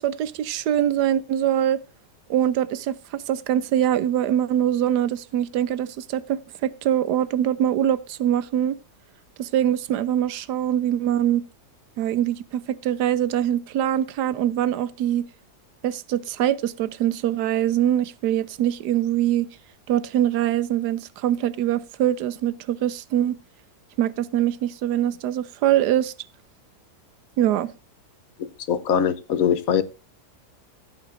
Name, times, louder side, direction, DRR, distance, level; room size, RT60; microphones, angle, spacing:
voice 1, 0.0-1.8 2.3-8.8 9.4-11.4 12.0-15.2 15.8-19.5 19.9-23.4 24.0-26.1 27.4-27.7, right 11 dB, 90° right, 1.3 m, -23 dB
voice 2, 28.4-29.8, left 8 dB, 65° left, 1.2 m, -22 dB
15.0 x 9.0 x 2.5 m
omnidirectional pair, 1.7 m